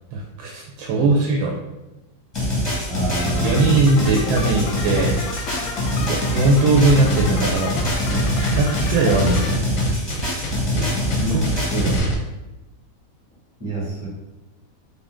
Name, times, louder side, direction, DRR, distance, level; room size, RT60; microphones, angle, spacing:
voice 1, 0.1-1.5 3.4-5.5 6.0-7.8 8.1-9.4 10.8-11.4 11.7-11.9, right 3 dB, 80° right, -1 dB, 1.3 m, -20 dB
sound 1, 2.3-12.0, left 1 dB, 25° left, 0.5 m, -24 dB
voice 2, 2.9-3.7 11.2-11.4 13.6-14.1, right 1 dB, 20° right, -5 dB, 0.9 m, -27 dB
sound 2, 3.2-9.5, left 4 dB, 85° left, 1.4 m, -33 dB
sound 3, 6.8-12.1, equal, 65° left, 0.9 m, -27 dB
3.8 x 2.5 x 3.5 m, 1.0 s
omnidirectional pair, 2.1 m